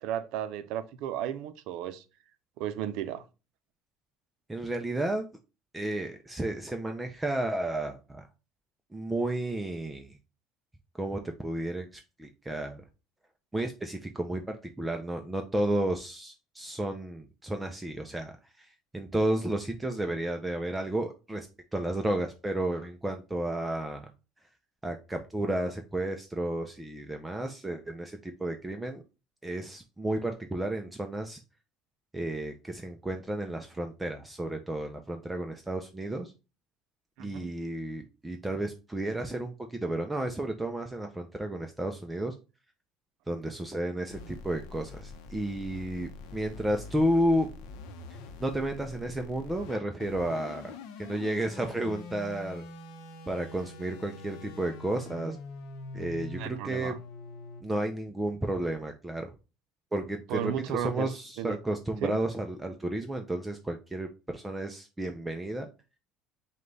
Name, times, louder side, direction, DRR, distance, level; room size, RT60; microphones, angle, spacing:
voice 1, 0.0-2.0 2.6-3.2 37.2-37.5 56.4-57.0 60.3-61.1 61.4-61.6 62.0-62.2, right 10 dB, 70° right, 0.5 m, -34 dB
voice 2, 4.5-5.3 5.7-8.3 8.9-10.2 11.0-12.8 13.5-21.5 21.7-24.1 24.8-29.0 29.4-31.4 32.1-36.3 37.2-42.4 43.3-47.5 48.4-50.7 51.0-52.6 53.3-55.4 55.9-57.0 57.6-59.3 59.9-65.7, right 1 dB, 10° right, 0.4 m, -32 dB
sound 1, 44.1-57.6, left 3 dB, 75° left, 0.7 m, -45 dB
5.0 x 2.2 x 3.8 m
cardioid pair, 145°, 0 cm